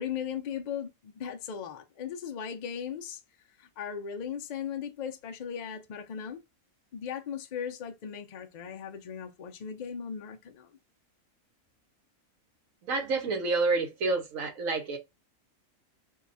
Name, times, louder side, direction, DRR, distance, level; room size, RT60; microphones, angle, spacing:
voice 1, 0.0-3.2 3.6-6.4 6.9-10.7, left 8 dB, 75° left, 0.4 m, -37 dB
voice 2, 12.8-15.0, right 3 dB, 75° right, 1.2 m, -28 dB
2.8 x 2.2 x 3.9 m
omnidirectional pair, 1.4 m